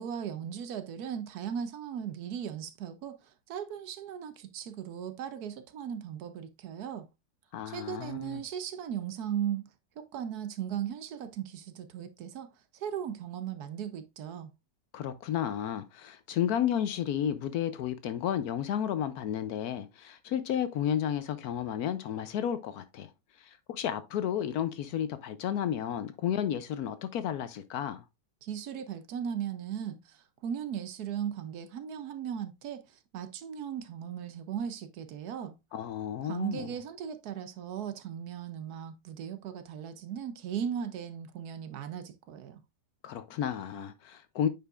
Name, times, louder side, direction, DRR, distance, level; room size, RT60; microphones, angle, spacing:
voice 1, 0.0-7.1 7.7-9.7 10.0-14.5 28.4-35.5 36.2-42.6, right 9 dB, 70° right, 1.1 m, -37 dB
voice 2, 7.5-8.4 14.9-23.1 23.4-28.0 35.7-36.7 43.0-44.5, left 9 dB, 70° left, 1.0 m, -32 dB
8.9 x 5.1 x 2.4 m
omnidirectional pair, 1.9 m